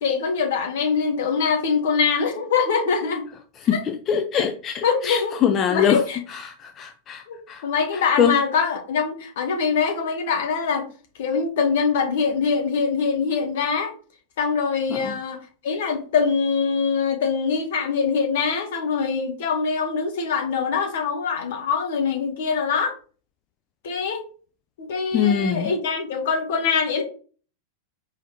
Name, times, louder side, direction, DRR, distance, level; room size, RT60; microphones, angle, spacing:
voice 1, 0.0-3.3 3.7-3.8 4.3-4.4 4.8-5.4 5.7-6.2 7.3-10.9 11.2-13.9 14.4-15.4 15.6-23.0 23.8-24.2 24.8-27.0, left 5 dB, 55° left, 1.0 m, -23 dB
voice 2, 3.6-6.0 6.3-7.6 7.9-8.3 15.0-15.1 25.1-25.7, left 8 dB, 30° left, 0.4 m, -23 dB
4.8 x 3.3 x 2.7 m
figure-of-eight pair, 90°, 0 cm